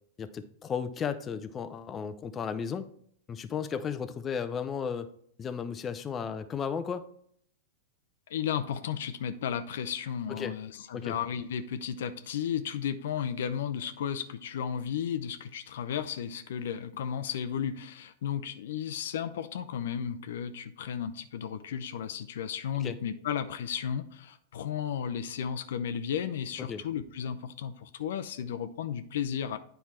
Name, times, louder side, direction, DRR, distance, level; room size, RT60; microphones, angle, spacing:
voice 1, 0.2-2.9 3.3-5.1 5.4-7.1 10.3-10.5 10.9-11.1 22.8-23.0 26.7-26.8, left 6 dB, 25° left, 10 dB, 0.6 m, -34 dB
voice 2, 8.3-29.6, left 8 dB, 65° left, 10 dB, 0.6 m, -34 dB
9.3 x 4.5 x 4.2 m, 0.63 s
hypercardioid pair, 100°, 0 cm